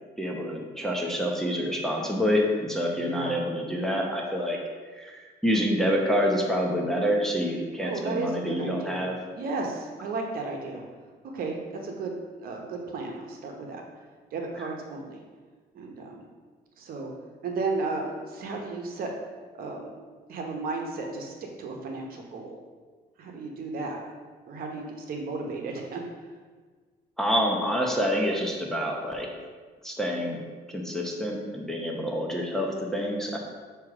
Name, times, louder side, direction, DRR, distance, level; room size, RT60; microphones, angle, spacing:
voice 1, 0.2-4.6 5.0-9.1 14.6-14.7 27.2-29.3 29.8-30.4 30.7-33.4, equal, ahead, -1 dB, 0.8 m, -27 dB
voice 2, 2.9-3.4 7.8-9.1 9.4-10.8 11.3-13.8 14.3-15.2 15.7-16.2 16.8-17.1 17.4-19.1 19.5-19.9 20.3-22.6 23.2-24.0 24.5-26.0, right 3 dB, 60° right, 1 dB, 1.1 m, -34 dB
6.8 x 3.0 x 4.8 m, 1.5 s
cardioid pair, 110°, 17 cm